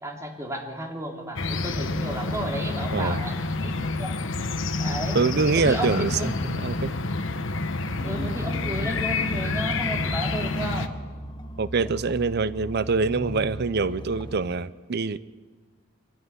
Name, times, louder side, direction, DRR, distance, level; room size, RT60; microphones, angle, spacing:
voice 1, 0.0-4.2 4.8-5.2 5.6-6.3 8.0-11.0, right 1 dB, 15° right, 1 dB, 3.0 m, -33 dB
sound 1, 1.4-10.9, left 3 dB, 70° left, 1.2 m, -28 dB
voice 2, 2.9-3.2 5.1-6.9 11.6-15.2, right 4 dB, 55° right, 16 dB, 0.6 m, -25 dB
sound 2, 8.0-14.4, equal, 25° left, 1.1 m, -37 dB
24.0 x 15.0 x 9.7 m, 1.4 s
head